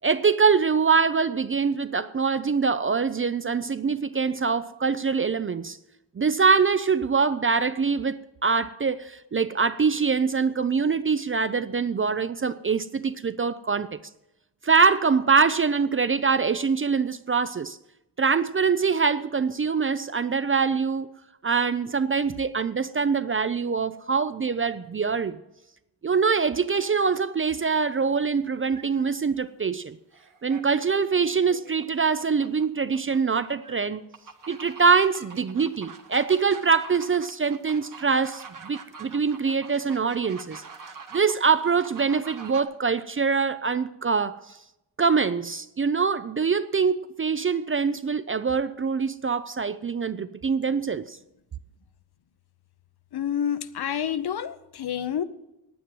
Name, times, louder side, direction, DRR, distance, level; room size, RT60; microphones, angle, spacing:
voice 1, 0.0-5.8 6.2-14.0 14.6-17.8 18.2-21.1 21.4-25.4 26.0-30.0 30.4-34.0 34.5-40.6 41.1-44.6 45.0-51.2, right 5 dB, 30° right, 0.4 m, -24 dB
sound 1, 27.0-27.2 28.7-29.2 30.1-30.6 31.0-33.8 34.1-42.6, right 5 dB, 45° right, 1.3 m, -45 dB
voice 2, 53.1-55.2, left 9 dB, 60° left, 0.8 m, -28 dB
9.6 x 9.4 x 7.6 m
wide cardioid pair, 125°, 43 cm